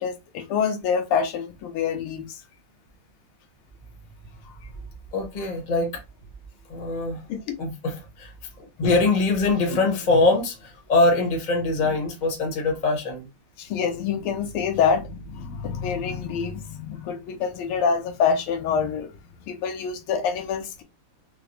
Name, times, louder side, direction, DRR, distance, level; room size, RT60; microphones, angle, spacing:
voice 1, 0.0-2.3 7.3-7.6 13.6-19.1 19.5-20.8, left 6 dB, 80° left, 1.5 m, -26 dB
voice 2, 5.1-5.9 6.7-7.2 7.6-8.3 8.6-13.3, left 3 dB, 35° left, 0.7 m, -23 dB
3.9 x 2.1 x 2.9 m
omnidirectional pair, 2.4 m